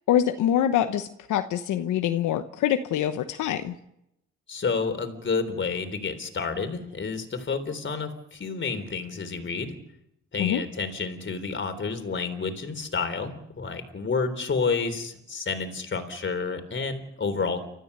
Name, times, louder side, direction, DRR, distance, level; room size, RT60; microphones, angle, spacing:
voice 1, 0.1-3.7 10.4-10.6, left 10 dB, 80° left, 7 dB, 1.1 m, -25 dB
voice 2, 4.5-9.7 10.3-17.6, left 4 dB, 40° left, 8 dB, 3.7 m, -30 dB
29.5 x 14.0 x 6.8 m, 0.82 s
cardioid pair, 90°, 30 cm